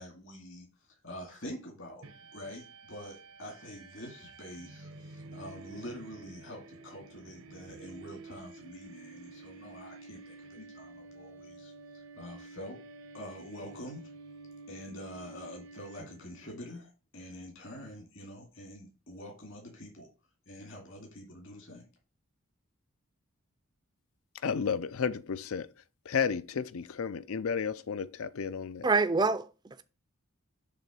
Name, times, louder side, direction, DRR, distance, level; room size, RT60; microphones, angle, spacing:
voice 1, 0.0-2.0 2.3-12.8 13.1-14.1 14.7-20.1 20.5-21.9, equal, 60° left, 2.2 m, -46 dB
sound 1, 2.0-16.5, right 3 dB, 70° right, 0.8 m, -50 dB
voice 2, 24.4-25.7 26.1-28.9, left 6 dB, 75° left, 0.5 m, -32 dB
voice 3, 28.8-29.8, right 3 dB, 20° right, 0.4 m, -27 dB
6.8 x 3.3 x 6.1 m
head